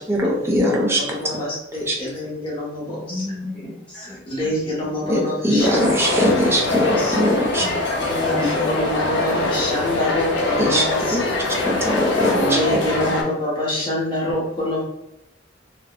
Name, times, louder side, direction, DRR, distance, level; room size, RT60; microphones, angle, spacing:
voice 1, 0.1-1.0 1.9-2.0 5.1-6.9 7.2-7.7 10.6-10.8 11.1-11.2 11.6-12.4 12.7-12.8, equal, 15° right, -2 dB, 0.5 m, -20 dB
voice 2, 1.2-3.2 4.3-6.3 6.6-7.2 8.4-11.6 12.4-14.8, left 1 dB, 30° left, -6 dB, 1.0 m, -26 dB
voice 3, 2.9-5.2 7.6-7.7 8.0-9.1 13.0-13.3 13.8-13.9, left 1 dB, 5° left, -9 dB, 1.3 m, -33 dB
sound 1, 5.6-13.2, left 2 dB, 70° left, 0.6 m, -23 dB
3.5 x 2.2 x 2.3 m, 0.87 s
head